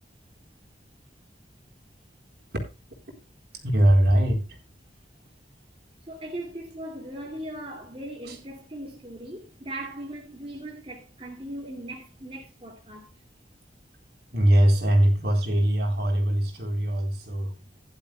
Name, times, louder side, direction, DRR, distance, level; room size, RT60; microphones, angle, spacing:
voice 1, 3.6-4.5 8.2-8.4 14.3-17.6, right 1 dB, 60° right, 4.1 m, -21 dB
voice 2, 6.1-13.1, right 1 dB, 30° right, 2.4 m, -39 dB
15.5 x 11.5 x 2.3 m
head